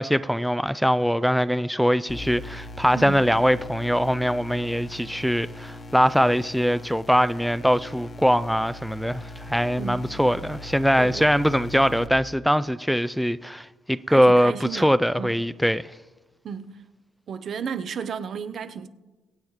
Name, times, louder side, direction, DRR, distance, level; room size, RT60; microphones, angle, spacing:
voice 1, 0.0-15.9, equal, ahead, 0.3 m, -22 dB
sound 1, 2.1-12.1, left 1 dB, 40° left, 1.2 m, -40 dB
voice 2, 2.9-3.3 9.8-10.1 11.0-11.3 14.1-15.4 16.4-16.8 17.3-18.9, right 7 dB, 60° right, 0.7 m, -34 dB
23.5 x 8.9 x 3.2 m
cardioid pair, 90°, 0 cm